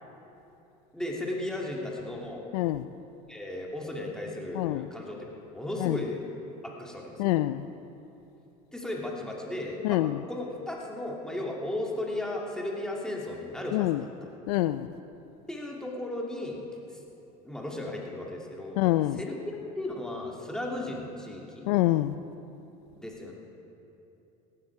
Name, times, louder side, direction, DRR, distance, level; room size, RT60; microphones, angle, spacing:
voice 1, 0.9-2.4 3.3-5.2 5.5-6.2 6.6-7.3 8.7-10.0 10.3-14.1 15.5-16.6 16.9-17.0 17.4-18.8 19.1-19.4 19.8-21.7 23.0-23.3, left 1 dB, 5° left, -2 dB, 2.6 m, -35 dB
voice 2, 2.5-2.9 4.5-4.9 5.8-6.0 7.2-7.7 9.8-10.2 13.7-14.0 14.5-14.9 18.8-19.2 21.7-22.1, left 16 dB, 85° left, 13 dB, 0.4 m, -26 dB
17.5 x 12.5 x 4.8 m, 2.9 s
supercardioid pair, 95°, 19 cm